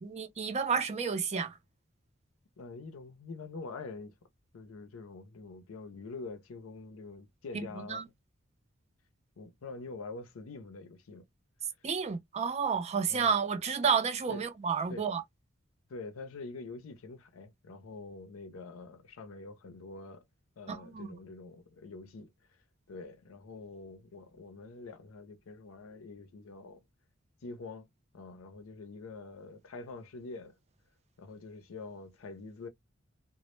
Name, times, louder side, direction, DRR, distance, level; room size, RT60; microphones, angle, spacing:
voice 1, 0.0-1.6 7.8-8.1 11.8-15.2 20.7-21.1, right 6 dB, 35° right, 0.4 m, -31 dB
voice 2, 2.6-4.1 4.5-8.0 9.4-11.3 13.1-13.3 14.3-14.4 14.9-15.1 15.9-20.2 20.6-22.3 22.9-26.8 27.4-27.9 28.1-30.6 31.2-32.7, left 3 dB, 85° left, 0.5 m, -45 dB
2.0 x 2.0 x 3.0 m
head